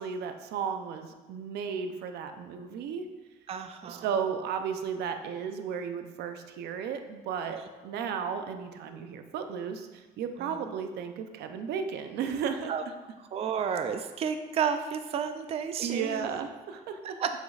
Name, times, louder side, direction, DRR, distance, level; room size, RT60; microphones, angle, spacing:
voice 1, 0.0-3.1 3.8-12.7 15.8-17.2, right 7 dB, 75° right, 7 dB, 0.6 m, -34 dB
voice 2, 3.5-4.1 7.5-7.6 10.4-10.6 12.7-12.8 13.3-16.4 17.0-17.3, right 7 dB, 35° right, 8 dB, 0.4 m, -32 dB
8.0 x 6.3 x 2.4 m, 1.3 s
cardioid pair, 110°, 17 cm